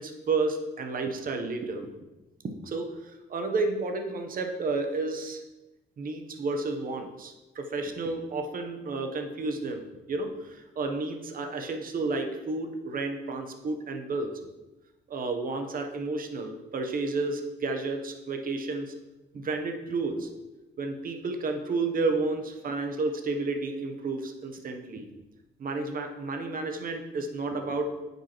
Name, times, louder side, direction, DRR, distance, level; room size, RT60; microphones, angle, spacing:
voice 1, 0.0-1.9 2.4-5.4 6.0-14.3 15.1-18.9 19.3-20.3 20.8-25.1 25.6-28.0, right 3 dB, 45° right, 5 dB, 0.9 m, -31 dB
8.8 x 5.4 x 3.0 m, 1.1 s
cardioid pair, 90°, 20 cm